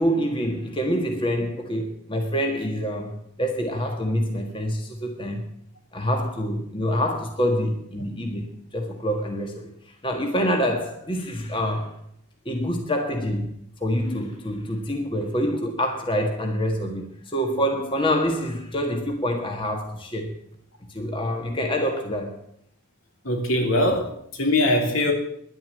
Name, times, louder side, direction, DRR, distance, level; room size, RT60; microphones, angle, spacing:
voice 1, 0.0-5.4 5.9-11.9 12.4-13.5 13.8-20.3 20.9-22.4, equal, 25° left, 3 dB, 1.5 m, -26 dB
voice 2, 23.2-25.1, left 1 dB, 75° left, 2 dB, 3.2 m, -22 dB
11.0 x 9.8 x 8.8 m, 0.70 s
head